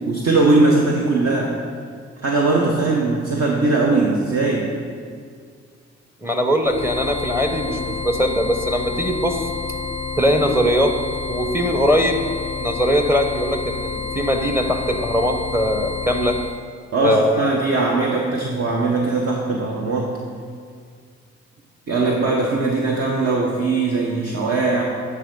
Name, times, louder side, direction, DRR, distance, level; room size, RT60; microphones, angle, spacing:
voice 1, 0.1-1.5 2.2-4.7 16.9-20.2 21.9-24.8, right 3 dB, 45° right, -1 dB, 1.0 m, -20 dB
voice 2, 6.2-9.5 10.1-10.9 11.3-12.2 12.6-16.4 17.0-17.6, equal, 5° right, 5 dB, 0.8 m, -20 dB
sound 1, 6.6-16.6, left 4 dB, 20° left, 0.5 m, -29 dB
9.7 x 3.5 x 5.4 m, 2.1 s
hypercardioid pair, 45°, 33 cm